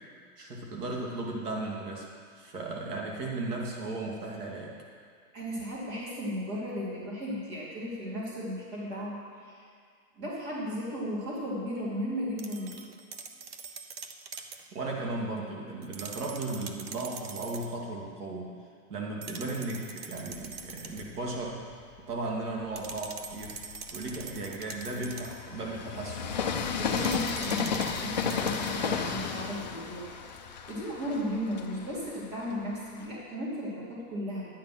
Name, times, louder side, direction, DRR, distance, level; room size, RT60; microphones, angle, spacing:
voice 1, 0.4-2.1 2.3-4.7 14.7-18.5 18.9-21.6 22.1-23.6 23.9-26.3, right 2 dB, 80° right, -2 dB, 2.7 m, -35 dB
voice 2, 5.3-9.6 10.2-12.9 26.8-30.2 30.7-34.5, equal, 25° right, -5 dB, 2.6 m, -35 dB
sound 1, 12.4-14.7 15.8-17.8 19.2-21.2 22.8-25.5 26.9-28.9, right 5 dB, 40° right, 0.7 m, -44 dB
Train, 20.2-21.9 22.5-33.1, left 6 dB, 35° left, 0.4 m, -34 dB
12.0 x 8.9 x 5.9 m, 2.1 s
supercardioid pair, 175°, 45 cm